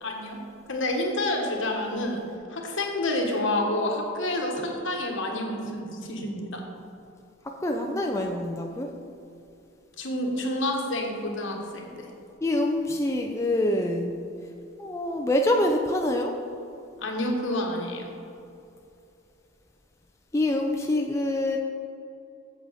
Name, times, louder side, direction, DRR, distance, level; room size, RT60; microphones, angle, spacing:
voice 1, 0.0-0.4 0.7-2.2 2.5-6.6 10.0-12.1 17.0-18.2, left 1 dB, 65° left, 1 dB, 1.3 m, -29 dB
voice 2, 7.6-8.9 12.4-14.1 14.8-16.3 20.3-21.6, left 1 dB, 15° left, 2 dB, 0.4 m, -25 dB
8.0 x 7.6 x 4.1 m, 2.7 s
head